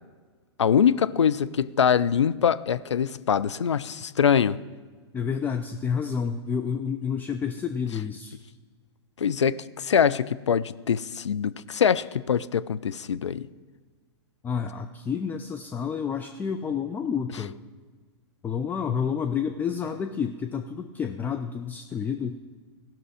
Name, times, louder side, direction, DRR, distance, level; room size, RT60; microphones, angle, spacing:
voice 1, 0.6-4.6 9.2-13.5, left 8 dB, 80° left, 15 dB, 0.4 m, -23 dB
voice 2, 5.1-8.4 14.4-17.6 18.4-22.4, left 7 dB, 10° left, 7 dB, 0.4 m, -29 dB
16.0 x 6.0 x 4.9 m, 1.5 s
figure-of-eight pair, 110°, 15 cm